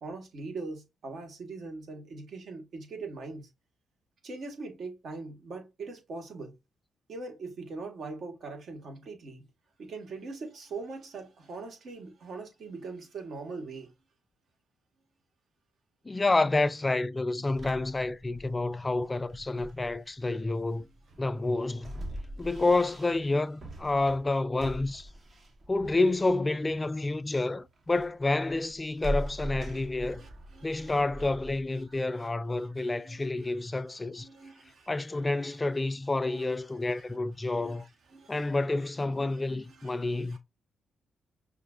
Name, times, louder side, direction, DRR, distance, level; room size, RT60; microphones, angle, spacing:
voice 1, 0.0-3.5 4.2-6.5 7.1-9.4 9.8-13.9 20.8-20.9 22.2-22.5 29.8-31.3 31.9-32.3 32.6-33.5 33.8-34.9 35.2-35.5 36.1-36.5 36.9-37.0 37.5-37.8 38.1-38.5 38.8-38.9 39.3-39.4 39.7-40.4, right 3 dB, 65° right, 1.3 m, -42 dB
voice 2, 16.1-20.9 21.2-21.9 22.4-25.1 25.7-30.2 30.6-34.3 34.9-37.9 38.3-40.4, left 2 dB, 25° left, 0.3 m, -29 dB
sound 1, 17.6-32.0, equal, 45° right, 0.9 m, -42 dB
5.6 x 2.4 x 2.3 m
cardioid pair, 65°, 0 cm